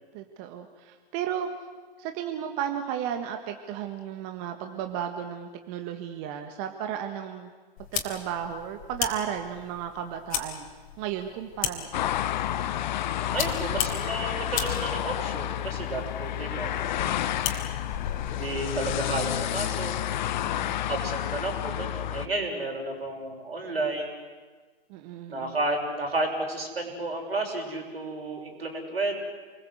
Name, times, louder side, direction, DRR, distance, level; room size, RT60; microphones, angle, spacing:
voice 1, 0.1-1.5 2.0-7.5 7.9-10.7 11.0-12.1 20.4-20.8 24.9-25.6, right 9 dB, 35° right, 6 dB, 1.7 m, -34 dB
sound 1, 7.8-19.2, left 9 dB, 30° left, 3.3 m, -37 dB
sound 2, 11.9-22.3, left 11 dB, 50° left, 1.1 m, -30 dB
voice 2, 13.3-16.7 17.0-17.5 18.4-19.9 20.9-24.2 25.3-29.2, right 2 dB, 80° right, 2 dB, 6.5 m, -32 dB
28.0 x 21.5 x 8.0 m, 1.5 s
figure-of-eight pair, 115°, 30 cm